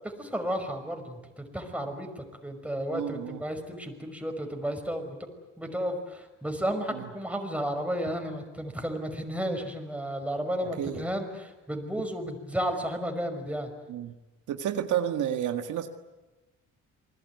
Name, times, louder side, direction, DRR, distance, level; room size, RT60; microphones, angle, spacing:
voice 1, 0.2-5.2 5.6-13.7, equal, 5° right, 4 dB, 5.6 m, -33 dB
voice 2, 2.9-3.4 6.9-7.1 10.8-11.0 13.9-14.1 14.5-15.9, right 10 dB, 80° right, 6 dB, 1.9 m, -30 dB
28.0 x 20.5 x 9.6 m, 1.1 s
cardioid pair, 90°, 30 cm